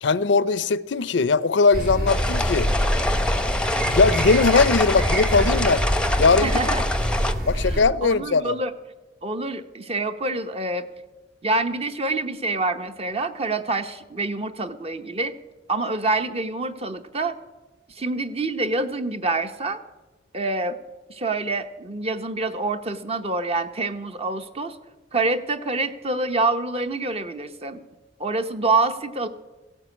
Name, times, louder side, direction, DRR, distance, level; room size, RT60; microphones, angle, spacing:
voice 1, 0.0-2.7 3.8-5.8 6.2-6.6 7.5-8.6, left 4 dB, 75° left, 0.6 m, -20 dB
sound 1, 1.7-7.8, equal, 60° right, 2.4 m, -25 dB
sound 2, 2.1-7.3, left 1 dB, 5° left, 0.7 m, -26 dB
voice 2, 6.4-6.8 7.7-8.7 9.2-10.9 11.4-15.3 15.7-17.4 18.0-19.8 20.3-20.8 21.1-24.8 25.1-27.8 28.2-29.3, right 2 dB, 35° right, 1.0 m, -26 dB
16.5 x 9.2 x 8.4 m
head